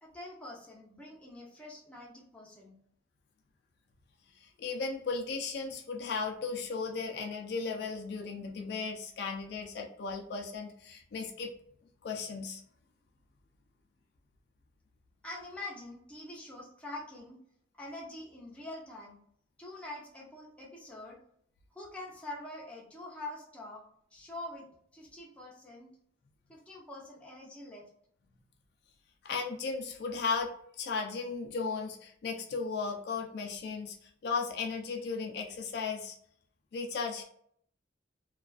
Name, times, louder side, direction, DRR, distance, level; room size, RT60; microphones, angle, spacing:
voice 1, 0.0-2.8 15.2-17.4 17.8-19.2 19.6-21.2 21.7-23.8 24.1-25.9 26.5-27.9, left 2 dB, 5° left, -4 dB, 0.5 m, -45 dB
voice 2, 4.4-11.5 12.0-12.6 29.2-30.5 30.8-34.0 34.2-36.2 36.7-37.2, left 4 dB, 55° left, 1 dB, 0.3 m, -35 dB
2.3 x 2.3 x 2.3 m, 0.66 s
head